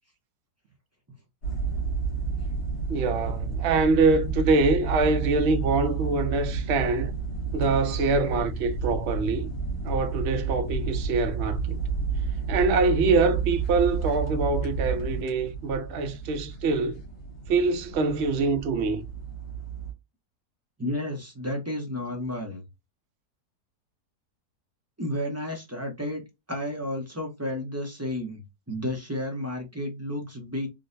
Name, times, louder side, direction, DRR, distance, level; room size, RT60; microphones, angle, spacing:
sound 1, 1.4-19.9, right 5 dB, 75° left, 1.7 m, -31 dB
voice 1, 2.9-7.1 7.5-9.5 9.8-11.8 12.5-17.0 17.5-19.0, right 3 dB, 65° right, 0.6 m, -24 dB
voice 2, 20.8-22.6 25.0-30.7, left 1 dB, 20° right, 0.4 m, -32 dB
3.7 x 2.1 x 2.5 m
omnidirectional pair, 1.7 m